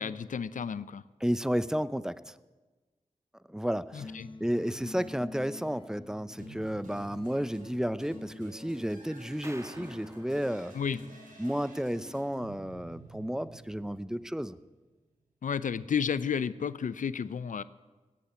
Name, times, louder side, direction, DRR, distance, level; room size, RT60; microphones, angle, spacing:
voice 1, 0.0-1.0 3.9-4.3 10.7-11.0 15.4-17.6, left 7 dB, 75° left, 16 dB, 0.6 m, -32 dB
voice 2, 1.2-2.3 3.5-4.1 4.4-10.7 11.4-14.6, equal, 5° right, 16 dB, 0.6 m, -32 dB
sound 1, 4.0-12.4, left 2 dB, 40° left, 1.2 m, -49 dB
sound 2, 6.4-14.6, right 2 dB, 85° right, 4.2 m, -52 dB
sound 3, 9.4-11.8, right 1 dB, 20° right, 1.4 m, -50 dB
17.5 x 8.6 x 8.7 m, 1.2 s
cardioid pair, 50°, 13 cm